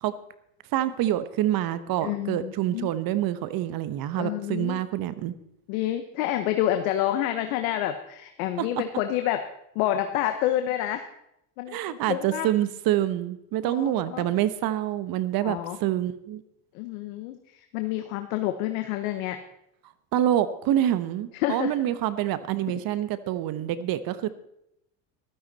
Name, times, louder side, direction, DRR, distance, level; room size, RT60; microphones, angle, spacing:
voice 1, 0.7-5.3 8.6-8.7 11.7-16.4 20.1-24.3, right 12 dB, 55° right, 14 dB, 1.1 m, -26 dB
voice 2, 2.0-2.9 4.1-4.8 5.7-9.5 9.7-11.0 11.6-12.5 13.6-14.2 15.4-15.8 16.7-19.4 21.4-21.7 22.7-22.8, left 12 dB, 80° left, 8 dB, 1.1 m, -28 dB
14.0 x 12.5 x 4.1 m, 0.79 s
supercardioid pair, 100°, 42 cm